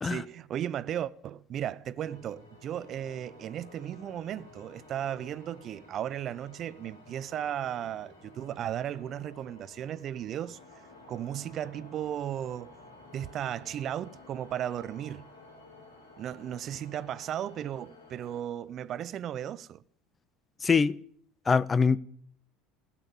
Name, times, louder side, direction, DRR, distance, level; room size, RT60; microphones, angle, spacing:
voice 1, 0.0-10.6 11.1-12.7 13.1-15.3 16.2-19.8, right 10 dB, 45° right, 0.5 m, -35 dB
sound 1, 2.0-18.4, left 2 dB, 90° left, 3.6 m, -53 dB
voice 2, 20.6-20.9 21.5-22.0, left 5 dB, 25° left, 0.5 m, -23 dB
15.0 x 7.4 x 9.7 m
hypercardioid pair, 70°, 0 cm